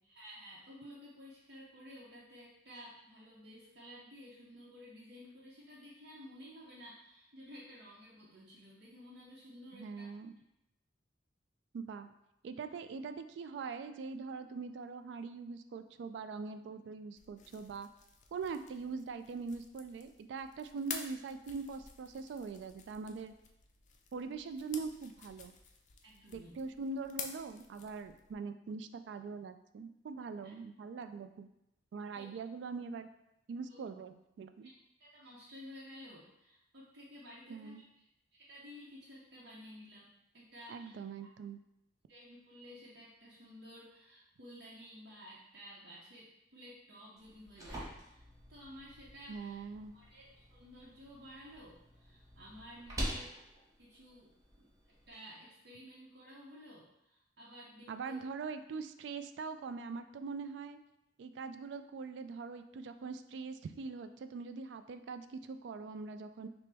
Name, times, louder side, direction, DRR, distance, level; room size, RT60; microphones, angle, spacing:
voice 1, 0.0-10.1 26.0-26.6 30.4-30.5 32.1-32.3 33.7-33.8 34.6-34.7 35.0-37.8 38.3-41.0 42.1-49.6 49.9-54.3 54.6-54.7 55.1-58.2, equal, 65° right, -7 dB, 0.7 m, -53 dB
voice 2, 9.7-10.3 11.7-12.1 12.4-17.9 18.3-23.3 24.1-25.5 26.3-31.5 31.9-33.1 33.5-34.7 37.5-37.8 40.7-41.6 49.3-49.9 57.9-60.8 61.2-66.5, right 4 dB, 85° right, 9 dB, 0.3 m, -42 dB
sound 1, 17.2-28.3, left 6 dB, 45° left, 0.4 m, -50 dB
sound 2, 47.2-55.1, equal, 20° right, 0.8 m, -46 dB
5.7 x 2.1 x 3.4 m, 0.84 s
head